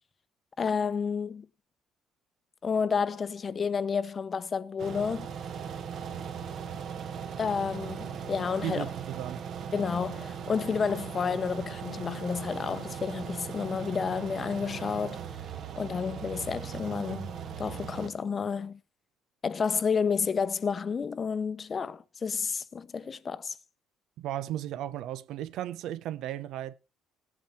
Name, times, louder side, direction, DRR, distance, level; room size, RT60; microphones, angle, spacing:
voice 1, 0.6-1.5 2.6-5.3 7.4-8.9 9.7-15.2 15.8-17.3 17.6-18.8 19.4-23.5, left 6 dB, 30° left, 0.8 m, -30 dB
sound 1, 4.8-18.1, right 7 dB, 55° right, 1.6 m, -38 dB
voice 2, 8.6-9.5 24.2-26.7, right 12 dB, 75° right, 0.7 m, -35 dB
16.5 x 8.7 x 4.4 m
cardioid pair, 125°, 0 cm